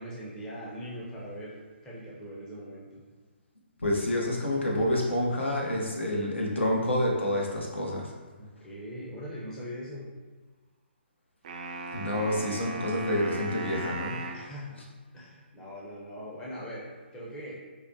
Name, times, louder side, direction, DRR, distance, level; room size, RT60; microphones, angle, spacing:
voice 1, 0.0-3.0 8.4-10.2 14.3-14.8 15.1-17.6, equal, 10° left, -6 dB, 0.5 m, -41 dB
voice 2, 3.8-8.1 11.9-14.4, left 1 dB, 80° left, -2 dB, 0.9 m, -28 dB
sound 1, 11.4-14.5, right 2 dB, 40° right, 0.4 m, -37 dB
4.8 x 2.1 x 2.7 m, 1.3 s
figure-of-eight pair, 140°, 6 cm